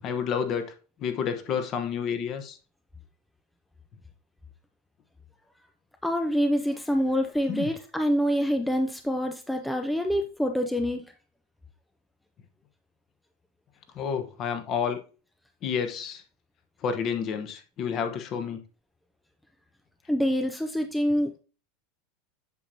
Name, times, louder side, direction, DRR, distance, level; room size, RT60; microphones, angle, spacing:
voice 1, 0.0-0.7 1.0-2.6 7.5-7.7 13.9-15.0 15.6-16.2 16.8-18.6, left 7 dB, 40° left, 1.1 m, -30 dB
voice 2, 6.0-11.0 20.1-21.4, equal, 5° left, 0.5 m, -26 dB
8.2 x 5.8 x 2.7 m
supercardioid pair, 135°, 0 cm